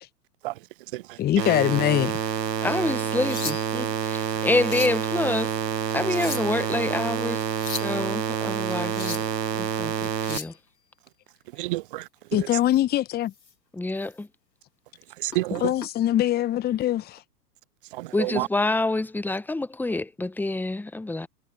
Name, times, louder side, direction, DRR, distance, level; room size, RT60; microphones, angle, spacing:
voice 1, 1.2-2.1 12.3-13.3 15.6-17.2, left 13 dB, 20° left, 1.0 m, -23 dB
sound 1, 1.4-10.4, right 8 dB, 85° right, 1.1 m, -28 dB
voice 2, 2.6-5.5 5.9-7.4 7.8-9.2 9.6-10.5 13.7-14.3 18.1-21.3, left 2 dB, 5° left, 1.2 m, -27 dB
sound 2, 3.0-3.9 4.4-5.0 5.9-6.6 7.4-7.9 8.7-9.3 10.0-10.6 12.6-12.8 13.3-13.5 14.0-14.1 15.3-15.9 17.0-17.2, left 5 dB, 85° left, 3.2 m, -37 dB
voice 3, 11.5-12.5 15.2-15.7 17.9-18.5, right 19 dB, 35° right, 0.5 m, -30 dB
figure-of-eight pair, 105°, 49 cm